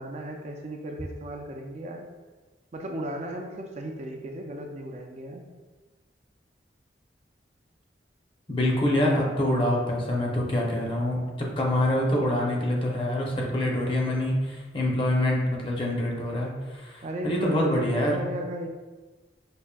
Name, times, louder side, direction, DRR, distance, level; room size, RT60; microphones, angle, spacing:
voice 1, 0.0-2.1 2.7-5.5 17.0-18.7, right 1 dB, 40° right, 2 dB, 0.3 m, -35 dB
voice 2, 8.5-18.2, left 1 dB, 30° left, -2 dB, 0.6 m, -26 dB
5.1 x 2.5 x 2.2 m, 1.3 s
head